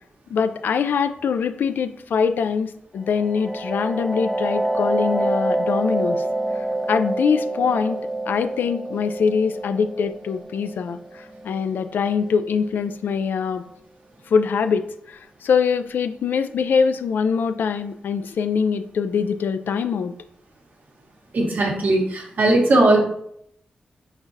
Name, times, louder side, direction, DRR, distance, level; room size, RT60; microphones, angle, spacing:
voice 1, 0.3-6.2 6.9-8.0 8.3-13.6 14.3-20.1, left 6 dB, 80° left, 10 dB, 0.3 m, -23 dB
sound 1, 3.0-12.5, right 1 dB, ahead, 0.3 m, -27 dB
voice 2, 21.3-23.0, right 2 dB, 65° right, 0 dB, 1.2 m, -18 dB
4.6 x 3.9 x 2.7 m, 0.71 s
cardioid pair, 55°, 3 cm